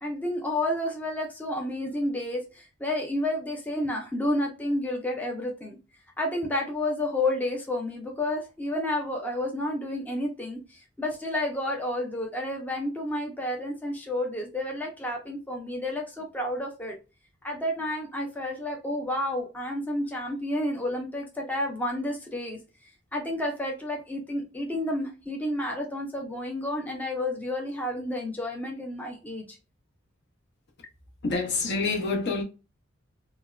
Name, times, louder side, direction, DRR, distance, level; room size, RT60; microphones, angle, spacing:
voice 1, 0.0-5.8 6.2-17.0 17.4-22.6 23.1-29.6, left 1 dB, 10° left, 0.4 m, -30 dB
voice 2, 31.2-32.4, left 3 dB, 60° left, 0.8 m, -27 dB
3.3 x 2.1 x 2.3 m
head